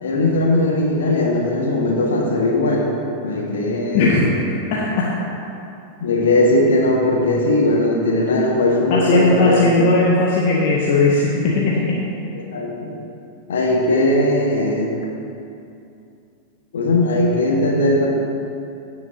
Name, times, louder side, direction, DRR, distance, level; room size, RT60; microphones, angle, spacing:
voice 1, 0.0-2.9 3.2-4.1 6.0-9.6 12.3-12.9 13.5-14.9 16.7-18.1, left 1 dB, 65° left, -1 dB, 1.6 m, -18 dB
voice 2, 3.9-4.3 4.7-5.1 8.9-12.0, left 3 dB, 50° left, -3 dB, 1.1 m, -17 dB
16.5 x 6.8 x 2.9 m, 2.6 s
figure-of-eight pair, 90°, 0 cm